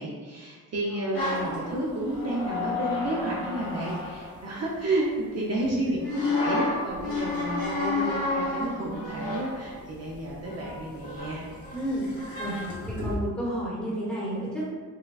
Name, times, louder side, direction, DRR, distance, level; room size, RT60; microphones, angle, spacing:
voice 1, 0.0-7.6 8.3-11.4, right 1 dB, 45° right, -4 dB, 0.6 m, -31 dB
voice 2, 0.9-1.2 5.6-5.8 7.6-8.3 11.7-12.0 12.4-12.6 12.9-14.7, right 1 dB, 5° left, -8 dB, 1.1 m, -32 dB
sound 1, 1.1-5.1 6.0-13.1, left 3 dB, 85° left, 1.3 m, -32 dB
4.7 x 2.2 x 2.3 m, 1.5 s
cardioid pair, 130°, 35 cm